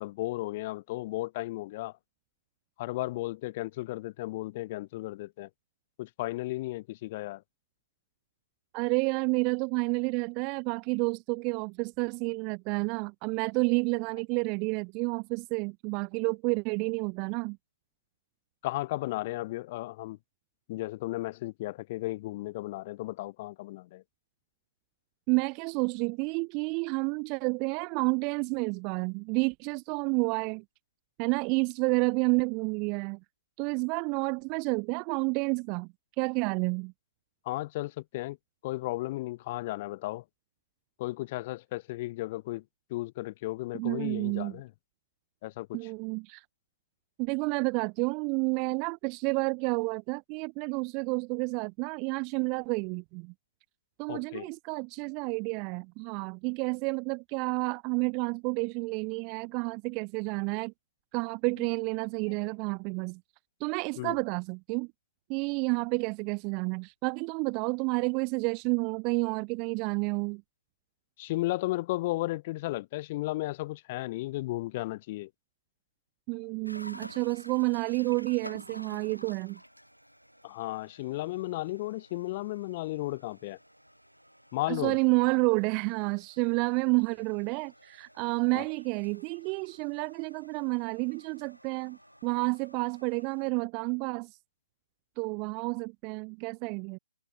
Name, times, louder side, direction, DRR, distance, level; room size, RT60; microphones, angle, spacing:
voice 1, 0.0-2.0 2.8-5.5 6.0-7.4 18.6-20.2 20.7-24.0 37.4-38.4 38.6-40.2 41.0-42.6 42.9-44.7 45.4-45.8 54.1-54.5 64.0-64.2 71.2-75.3 80.4-83.6 84.5-85.0 88.5-88.6, left 18 dB, 30° left, 1.3 m, -34 dB
voice 2, 8.7-17.6 25.3-30.6 31.2-33.2 33.6-35.9 36.2-36.9 43.8-44.6 45.7-46.4 47.2-53.3 54.0-60.7 61.1-63.2 63.6-64.9 65.3-70.4 76.3-79.6 84.7-94.3 95.2-97.0, right 33 dB, 25° right, 0.3 m, -30 dB
sound 1, 76.7-93.5, equal, 90° right, 5.6 m, -52 dB
figure-of-eight pair, 135°, 0 cm